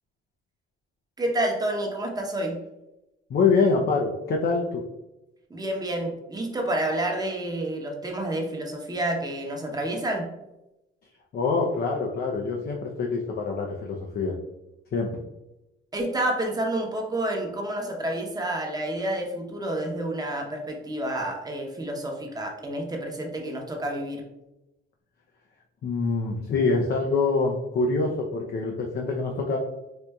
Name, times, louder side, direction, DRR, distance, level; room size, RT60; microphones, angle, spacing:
voice 1, 1.2-2.6 5.5-10.3 15.9-24.3, right 1 dB, 20° right, 1 dB, 0.8 m, -29 dB
voice 2, 3.3-4.8 11.3-14.3 14.9-15.1 25.8-29.6, left 4 dB, 50° left, 0 dB, 0.5 m, -25 dB
4.3 x 2.5 x 2.3 m, 0.92 s
cardioid pair, 90°, 20 cm